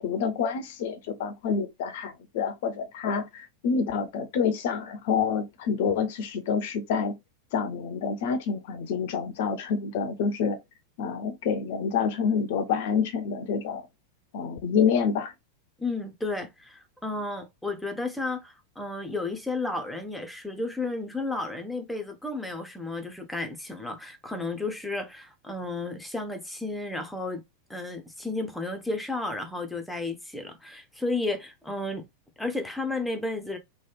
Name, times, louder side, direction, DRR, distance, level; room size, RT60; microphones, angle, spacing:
voice 1, 0.0-7.1 7.5-10.6 11.0-13.9 14.3-15.3, left 6 dB, 50° left, 0.6 m, -27 dB
voice 2, 15.8-27.4 27.7-32.1 32.4-33.6, left 2 dB, 5° left, 0.7 m, -32 dB
3.1 x 2.2 x 3.2 m
figure-of-eight pair, 90°, 0 cm